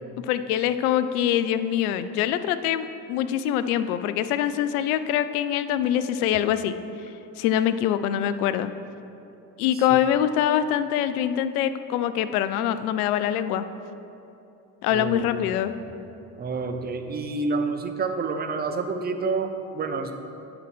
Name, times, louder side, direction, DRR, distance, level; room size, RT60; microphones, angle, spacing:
voice 1, 0.2-6.8 7.4-8.7 9.6-13.7 14.8-15.8, left 10 dB, 60° left, 12 dB, 0.5 m, -24 dB
voice 2, 14.9-15.6 16.4-20.1, right 4 dB, 20° right, 6 dB, 0.6 m, -29 dB
8.9 x 3.9 x 6.1 m, 2.9 s
figure-of-eight pair, 50°, 50 cm